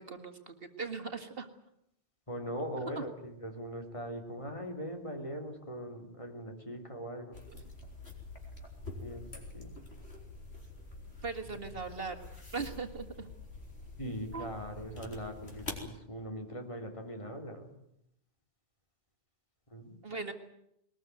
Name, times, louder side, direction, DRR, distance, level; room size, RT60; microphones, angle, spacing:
voice 1, 0.0-1.5 2.6-3.1 11.2-12.2 12.5-13.3 14.3-14.5 20.0-20.3, right 4 dB, 65° right, 6 dB, 2.1 m, -39 dB
voice 2, 2.3-7.4 9.0-9.2 9.5-9.8 14.0-17.7 19.7-20.0, equal, 30° left, 3 dB, 3.4 m, -41 dB
sound 1, 7.3-15.9, left 2 dB, 85° left, 4.2 m, -46 dB
21.0 x 20.0 x 9.3 m, 0.77 s
omnidirectional pair, 1.1 m